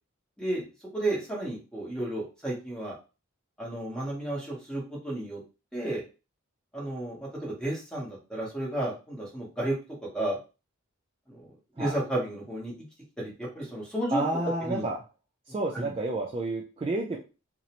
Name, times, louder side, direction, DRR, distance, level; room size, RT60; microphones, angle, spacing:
voice 1, 0.9-3.0 3.6-5.4 5.7-6.0 6.7-9.7 10.0-10.4 11.3-12.7 13.2-14.2 14.7-14.8 15.5-15.9, right 1 dB, 5° left, -4 dB, 0.9 m, -32 dB
voice 2, 14.1-15.0 15.5-17.2, right 2 dB, 25° right, -1 dB, 0.3 m, -30 dB
2.6 x 2.0 x 2.8 m, 0.32 s
head